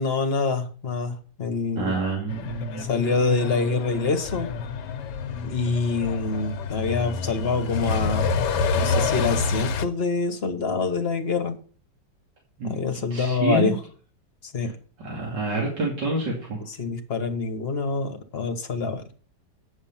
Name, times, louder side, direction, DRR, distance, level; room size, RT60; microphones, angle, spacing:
voice 1, 0.0-2.0 2.8-4.5 5.4-8.3 8.7-11.6 12.6-13.8 14.4-14.7 16.7-19.0, left 4 dB, 40° left, 6 dB, 1.3 m, -26 dB
voice 2, 1.8-2.9 12.6-12.8 13.1-13.7 15.0-16.6, right 2 dB, 85° right, -3 dB, 3.3 m, -27 dB
Truck, 2.3-9.9, left 4 dB, 85° left, 1.4 m, -28 dB
8.9 x 7.3 x 5.7 m, 0.41 s
omnidirectional pair, 1.8 m